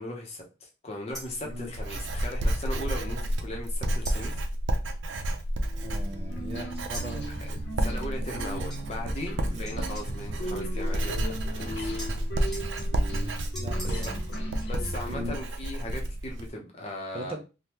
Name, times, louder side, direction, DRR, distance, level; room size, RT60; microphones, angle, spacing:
voice 1, 0.0-4.5 7.4-7.5 7.8-11.9 13.8-14.0 14.6-17.3, left 1 dB, 35° left, 0 dB, 0.7 m, -38 dB
sound 1, 1.1-1.5 4.0-4.4 6.9-7.2 8.7-8.9 9.7-11.7 12.0-14.9, equal, ahead, 0.9 m, -45 dB
Writing, 1.1-16.5, right 1 dB, 85° right, 0.5 m, -31 dB
sound 2, 5.7-15.3, right 1 dB, 75° left, 0.8 m, -38 dB
voice 2, 5.7-7.3 9.4-9.7 13.1-14.2 15.1-15.4 17.1-17.4, equal, 30° right, 2 dB, 0.5 m, -39 dB
3.4 x 2.2 x 2.9 m, 0.30 s
head